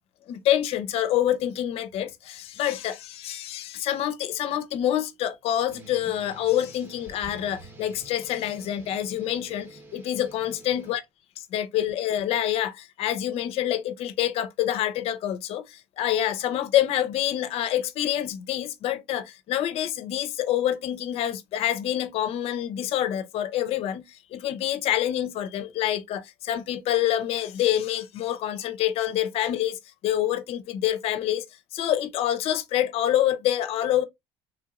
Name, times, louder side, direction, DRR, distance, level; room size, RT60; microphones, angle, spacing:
voice 1, 0.3-11.0 11.4-34.0, left 11 dB, 60° left, 0.5 m, -27 dB
sound 1, 5.7-11.0, right 2 dB, 20° right, 0.8 m, -48 dB
3.4 x 2.9 x 2.3 m
cardioid pair, 140°, 12 cm